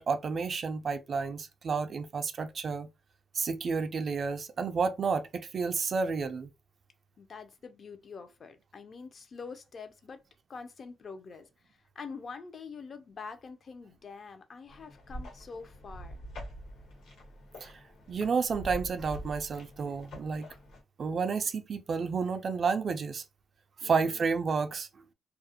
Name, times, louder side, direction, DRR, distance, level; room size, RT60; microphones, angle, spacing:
voice 1, 0.0-2.9 3.3-6.5 17.6-17.7 18.1-20.5 21.0-23.2 23.8-24.9, right 5 dB, 45° right, 0.3 m, -31 dB
voice 2, 7.2-10.2 10.5-11.5 12.0-16.2 23.8-24.4, left 5 dB, 45° left, 0.5 m, -45 dB
sound 1, 14.7-20.8, equal, 70° left, 1.3 m, -45 dB
2.3 x 2.0 x 2.8 m
cardioid pair, 90°, 0 cm